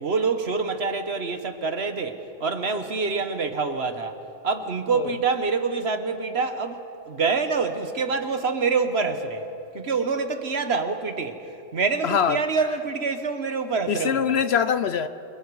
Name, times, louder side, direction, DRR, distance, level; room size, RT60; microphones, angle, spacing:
voice 1, 0.0-4.1 4.4-9.5 9.7-14.2, right 4 dB, 55° right, 1.4 m, -26 dB
voice 2, 12.0-12.4 13.9-15.1, left 7 dB, 60° left, 0.8 m, -23 dB
28.5 x 25.0 x 4.8 m
omnidirectional pair, 1.3 m